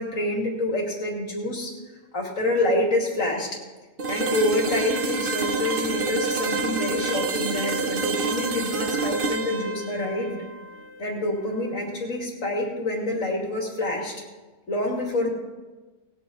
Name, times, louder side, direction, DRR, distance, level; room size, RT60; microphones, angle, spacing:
voice 1, 0.0-1.7 2.1-3.6 4.1-10.4 11.0-14.1 14.7-15.3, left 1 dB, 80° left, 0 dB, 2.8 m, -27 dB
sound 1, 4.0-11.8, right 3 dB, 45° right, 1.0 m, -28 dB
19.5 x 8.3 x 4.1 m, 1.2 s
omnidirectional pair, 1.3 m